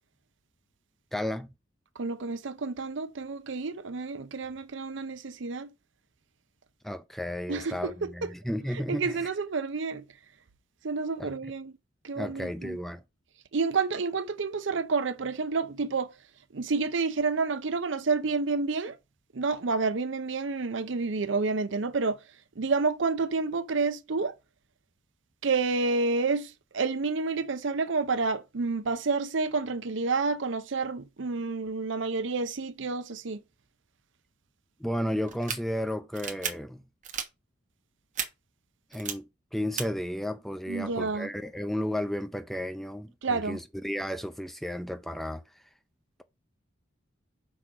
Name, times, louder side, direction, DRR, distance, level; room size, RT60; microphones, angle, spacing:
voice 1, 1.1-1.5 6.8-9.3 11.2-11.3 12.2-13.0 34.8-36.8 38.9-45.4, equal, ahead, 0.5 m, -33 dB
voice 2, 2.0-5.7 7.5-8.3 8.7-10.0 10.8-11.7 12.0-12.8 13.5-16.1 16.5-19.0 19.3-22.2 22.6-24.4 25.4-33.4 40.7-41.3 43.2-43.6, right 4 dB, 70° right, 0.6 m, -29 dB
sound 1, 35.3-35.6 36.1-36.5 37.0-37.3 38.2-38.3 38.9-39.1 39.8-39.9, right 7 dB, 40° right, 1.2 m, -32 dB
6.2 x 3.8 x 4.8 m
head